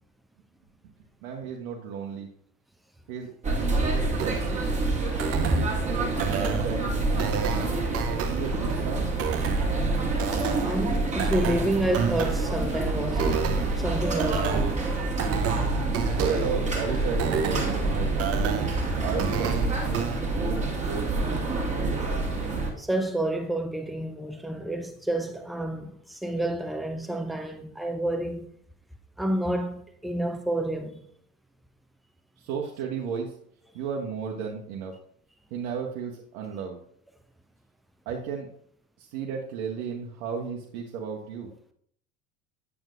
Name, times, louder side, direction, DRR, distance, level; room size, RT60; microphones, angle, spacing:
voice 1, 1.2-2.3 3.1-3.3 3.6-4.6 5.4-9.1 16.1-18.6 19.0-21.4 32.4-33.3 33.7-34.9 35.5-36.8 38.1-38.5 39.0-41.5, right 6 dB, 50° right, 1.0 m, -34 dB
sound 1, 3.4-22.7, right 3 dB, 15° right, 1.6 m, -27 dB
sound 2, 4.2-20.2, right 7 dB, 35° right, 0.8 m, -32 dB
voice 2, 10.6-14.8 22.8-28.5 29.2-31.1, right 1 dB, ahead, 0.5 m, -29 dB
8.9 x 6.2 x 2.5 m
figure-of-eight pair, 65°, 44 cm